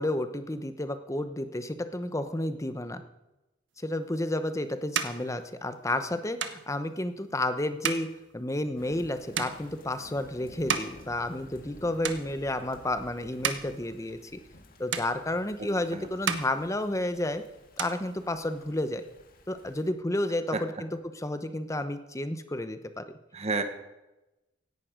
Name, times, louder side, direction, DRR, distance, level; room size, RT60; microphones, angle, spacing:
voice 1, 0.0-3.0 3.8-8.1 8.3-14.2 14.8-17.4 17.8-19.0 19.5-20.9 21.2-23.0, left 1 dB, 15° left, 10 dB, 0.9 m, -31 dB
sound 1, 4.1-11.8 12.0-12.7 13.2-14.6 14.9-15.8 16.1-17.3 17.6-18.7, right 7 dB, 80° right, 1.1 m, -36 dB
Thunder / Rain, 8.8-19.9, left 1 dB, 50° left, 1.8 m, -53 dB
voice 2, 15.6-16.1 20.5-20.8 23.3-23.6, right 3 dB, 35° right, 8 dB, 1.2 m, -32 dB
17.0 x 11.0 x 5.1 m, 0.99 s
head